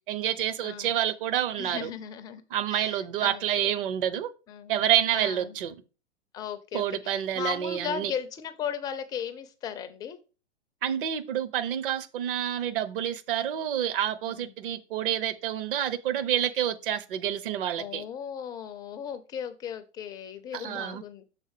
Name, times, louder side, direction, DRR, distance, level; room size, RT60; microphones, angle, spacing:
voice 1, 0.1-1.9 2.5-4.3 4.7-5.8 6.7-8.1 10.8-18.0 20.5-21.0, right 10 dB, 50° right, 0.9 m, -28 dB
voice 2, 0.6-1.0 1.6-2.4 2.7-3.7 4.5-4.8 5.1-5.6 6.3-10.2 14.2-14.5 17.8-21.2, left 8 dB, 10° left, 0.4 m, -37 dB
6.5 x 3.9 x 4.8 m
figure-of-eight pair, 110°, 34 cm